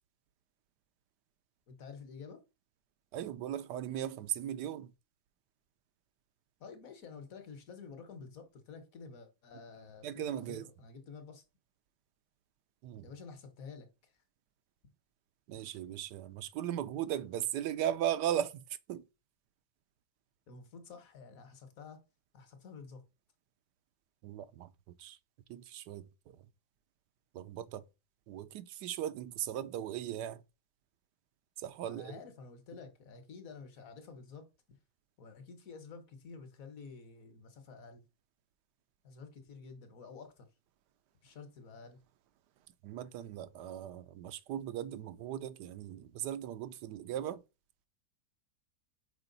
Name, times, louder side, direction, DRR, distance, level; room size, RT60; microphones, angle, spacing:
voice 1, 1.7-2.4 6.6-11.4 13.0-14.2 20.5-22.0 22.3-23.0 31.9-34.8 35.2-38.0 39.0-40.5 41.2-42.0, left 5 dB, 60° left, 1.4 m, -50 dB
voice 2, 3.1-4.9 10.0-10.7 12.8-13.1 15.5-19.0 24.2-24.7 25.0-25.2 25.5-26.4 27.3-27.8 28.3-30.4 31.6-32.2 42.8-47.4, right 11 dB, 85° right, 1.2 m, -38 dB
5.8 x 4.5 x 3.9 m
omnidirectional pair, 1.8 m